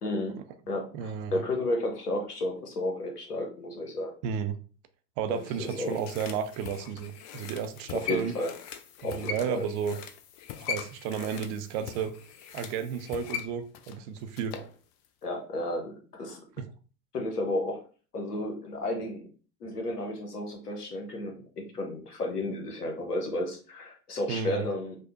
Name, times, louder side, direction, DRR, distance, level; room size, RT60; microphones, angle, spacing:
voice 1, 0.0-0.4 0.7-4.1 5.3-5.9 8.0-8.5 9.0-9.7 14.5-14.6 15.2-16.4 17.1-17.8 18.1-19.3 19.6-25.0, left 1 dB, 90° left, 2 dB, 0.9 m, -32 dB
voice 2, 0.9-1.4 4.2-4.6 5.2-8.3 9.0-10.0 10.7-12.1 12.5-14.5 16.6-16.7 24.3-24.7, right 7 dB, 45° right, 9 dB, 0.5 m, -32 dB
sound 1, 5.3-14.7 15.0-15.1, left 8 dB, 45° left, 0.4 m, -41 dB
5.1 x 2.0 x 2.4 m, 0.39 s
figure-of-eight pair, 80°, 45 cm